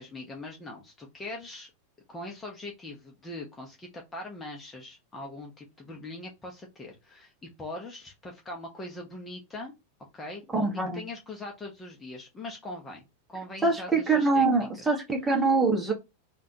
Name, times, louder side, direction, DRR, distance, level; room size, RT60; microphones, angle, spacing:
voice 1, 0.0-1.7 2.1-9.7 10.1-13.0 13.3-15.0, left 2 dB, 15° left, 0 dB, 1.0 m, -41 dB
voice 2, 10.5-11.0 13.6-15.9, right 3 dB, 10° right, 1 dB, 1.2 m, -24 dB
3.7 x 2.5 x 2.9 m, 0.23 s
figure-of-eight pair, 90°, 0 cm